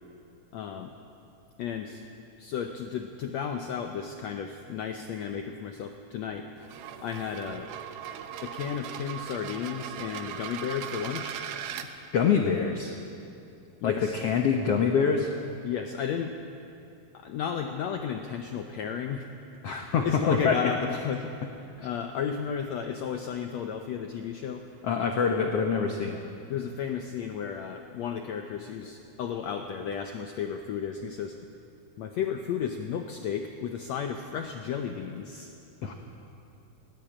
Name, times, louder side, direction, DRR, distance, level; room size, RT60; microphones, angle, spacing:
voice 1, 0.5-0.9 1.6-2.0 2.4-6.5 7.0-7.7 8.4-11.9 13.8-14.1 15.6-16.3 17.1-19.3 19.7-21.3 21.6-24.6 26.5-31.4 32.0-35.5, left 7 dB, 90° left, 5 dB, 1.5 m, -33 dB
sound 1, 6.6-11.9, right 9 dB, 90° right, 2.9 m, -39 dB
voice 2, 12.1-12.9 13.8-15.3 19.6-20.6 24.8-26.2 35.8-35.9, left 6 dB, 70° left, 3 dB, 1.4 m, -25 dB
19.0 x 16.0 x 8.6 m, 2.7 s
omnidirectional pair, 4.2 m